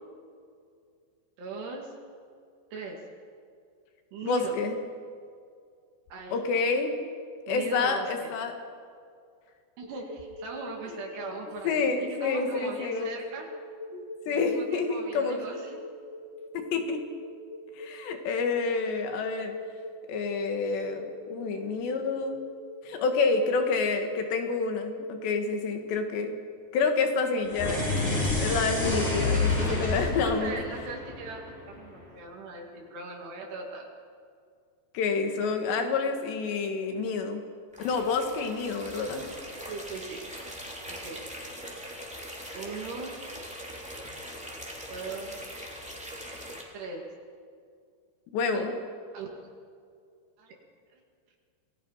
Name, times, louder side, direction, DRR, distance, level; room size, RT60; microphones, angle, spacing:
voice 1, 1.4-1.9 2.7-3.1 4.1-4.6 6.1-6.4 7.5-8.3 9.8-13.5 14.3-15.8 30.1-31.4 31.7-33.9 37.0-37.2 39.7-40.3 40.9-41.3 42.5-43.3 44.9-45.5 46.7-47.2 48.5-48.7 49.1-49.4 50.4-50.6 50.9-51.0, right 3 dB, 75° right, 0 dB, 4.3 m, -39 dB
voice 2, 4.3-4.7 6.3-6.9 7.5-8.5 11.6-13.2 13.9-15.4 16.5-17.0 17.8-19.6 20.1-22.5 22.8-26.4 26.7-27.9 28.4-30.6 34.9-37.4 37.8-39.3 48.3-48.7, left 4 dB, 85° left, 5 dB, 4.1 m, -28 dB
sound 1, 9.8-25.7, left 2 dB, 25° right, 3.0 m, -42 dB
sound 2, 27.4-31.9, left 2 dB, 15° left, 3.3 m, -28 dB
sound 3, 37.7-46.6, equal, ahead, 2.4 m, -41 dB
26.5 x 19.0 x 5.7 m, 2.2 s
omnidirectional pair, 4.9 m